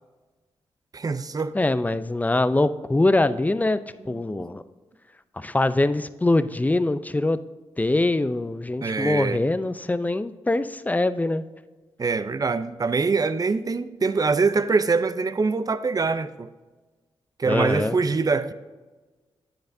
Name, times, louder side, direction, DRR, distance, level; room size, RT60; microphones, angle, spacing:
voice 1, 0.9-1.5 4.3-4.5 8.8-9.4 12.0-16.5 17.4-18.5, right 4 dB, 35° right, 0.5 m, -24 dB
voice 2, 1.5-4.6 5.4-7.4 7.8-11.4 17.5-17.9, left 2 dB, 15° left, 0.5 m, -23 dB
10.5 x 7.9 x 2.6 m
cardioid pair, 55°, 10 cm